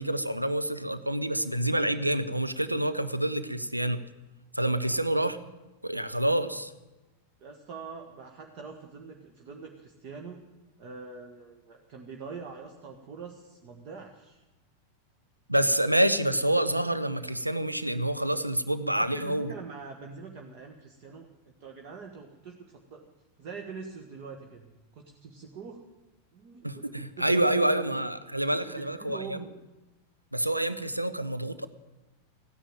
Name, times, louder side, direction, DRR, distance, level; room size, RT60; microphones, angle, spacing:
voice 1, 0.0-4.0 4.5-5.4 5.8-6.7 15.5-19.5 26.6-29.5 30.3-31.7, right 1 dB, 85° right, 12 dB, 0.8 m, -27 dB
voice 2, 7.4-10.4 10.8-14.4 18.9-23.1 23.4-25.8 26.3-27.9 28.7-29.5, right 5 dB, 45° right, 3 dB, 1.6 m, -44 dB
15.5 x 10.0 x 9.1 m, 1.1 s
figure-of-eight pair, 90°, 0 cm